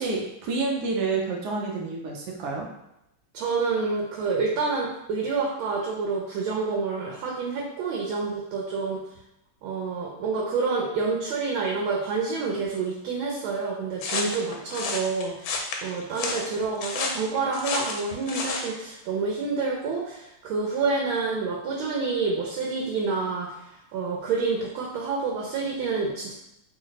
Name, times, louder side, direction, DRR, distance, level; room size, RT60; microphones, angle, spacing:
voice 1, 0.0-2.7, right 4 dB, 65° right, 0 dB, 1.1 m, -28 dB
voice 2, 3.3-9.0 9.6-23.6 23.9-26.3, right 4 dB, 85° right, -2 dB, 1.5 m, -28 dB
sound 1, 14.0-18.7, left 4 dB, 80° left, 1.3 m, -31 dB
3.4 x 2.1 x 3.9 m, 0.84 s
omnidirectional pair, 2.2 m